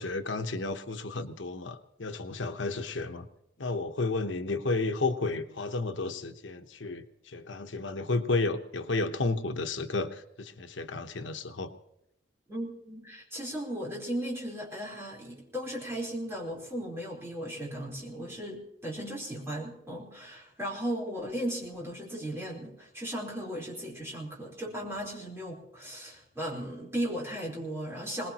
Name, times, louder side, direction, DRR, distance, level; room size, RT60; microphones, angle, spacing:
voice 1, 0.0-3.3 3.6-11.7, left 3 dB, 90° left, 7 dB, 1.0 m, -32 dB
voice 2, 12.5-28.3, equal, 15° right, -3 dB, 4.2 m, -36 dB
22.0 x 20.0 x 3.0 m, 0.80 s
head